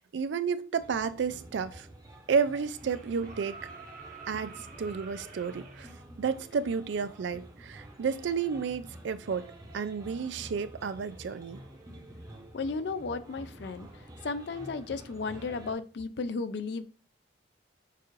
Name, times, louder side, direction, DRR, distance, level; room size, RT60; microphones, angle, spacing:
voice 1, 0.1-1.9 2.3-3.6 4.3-5.9 6.2-9.5 9.7-11.6, right 6 dB, 80° right, 0.4 m, -31 dB
sound 1, 0.8-15.7, right 1 dB, 20° right, 0.7 m, -49 dB
sound 2, 2.7-5.9 7.7-7.8, right 4 dB, 45° right, 0.9 m, -48 dB
voice 2, 12.5-13.9 14.2-16.9, left 4 dB, 65° left, 0.4 m, -34 dB
6.6 x 2.5 x 3.1 m
head